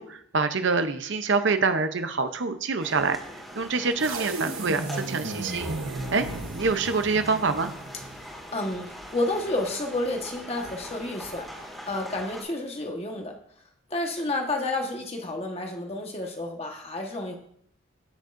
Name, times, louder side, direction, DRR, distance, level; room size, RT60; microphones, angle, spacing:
voice 1, 0.0-3.2 3.6-6.3 6.6-7.7, right 4 dB, 60° right, 9 dB, 0.7 m, -26 dB
sound 1, 2.8-12.4, equal, ahead, 2.1 m, -42 dB
sound 2, 4.0-8.3, right 2 dB, 80° right, 1.1 m, -35 dB
voice 2, 8.1-13.4 13.9-17.4, left 2 dB, 30° left, 2 dB, 1.3 m, -31 dB
15.5 x 6.4 x 2.6 m, 0.64 s
head